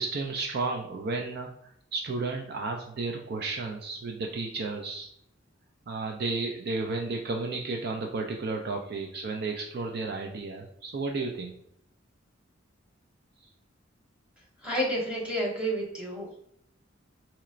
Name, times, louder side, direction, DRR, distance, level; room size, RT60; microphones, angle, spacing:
voice 1, 0.0-1.5 1.9-5.1 5.9-11.5, right 3 dB, 55° right, 2 dB, 0.4 m, -32 dB
voice 2, 14.6-16.4, equal, 5° right, -4 dB, 1.1 m, -30 dB
4.3 x 2.9 x 2.4 m, 0.72 s
head